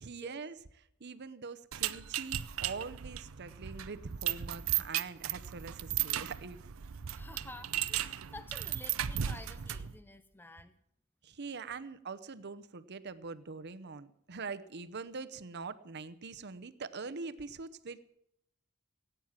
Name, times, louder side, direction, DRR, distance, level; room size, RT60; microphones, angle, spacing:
voice 1, 0.0-6.7 11.2-18.2, right 4 dB, 55° right, 13 dB, 0.8 m, -43 dB
sound 1, 1.7-10.0, right 11 dB, 85° right, 0.6 m, -36 dB
voice 2, 7.1-10.7, left 2 dB, 10° left, 11 dB, 0.6 m, -51 dB
17.5 x 9.1 x 7.4 m, 0.77 s
head